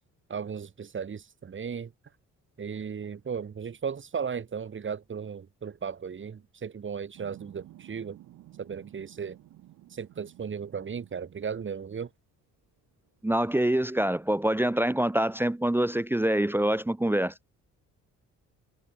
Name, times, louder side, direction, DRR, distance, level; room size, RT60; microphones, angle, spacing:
voice 1, 0.3-1.9 2.6-8.2 8.6-9.4 9.9-12.1, right 6 dB, 40° right, 2.5 m, -36 dB
sound 1, 7.1-11.6 12.9-13.0 13.4-15.5, right 14 dB, 85° right, 5.7 m, -54 dB
voice 2, 13.2-17.3, right 1 dB, 5° right, 0.7 m, -25 dB
cardioid pair, 90°, 30 cm